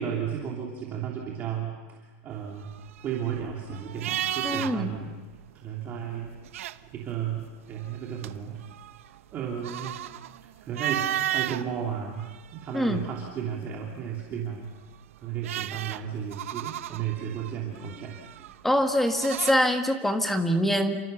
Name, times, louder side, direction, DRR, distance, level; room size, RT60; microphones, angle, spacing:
voice 1, 0.0-2.7 3.0-5.1 5.5-6.3 6.9-8.6 9.3-10.0 10.4-14.7 15.2-18.5, right 8 dB, 25° right, -1 dB, 3.1 m, -34 dB
sound 1, 2.5-5.0 5.3-5.4 6.3-7.2 7.7-11.7 12.2-13.2 14.7-19.5, right 13 dB, 90° right, 1.0 m, -34 dB
voice 2, 4.4-4.9 12.7-13.1 18.6-21.0, equal, 5° left, 6 dB, 1.5 m, -24 dB
29.5 x 26.5 x 6.9 m, 1.3 s
supercardioid pair, 170°, 7 cm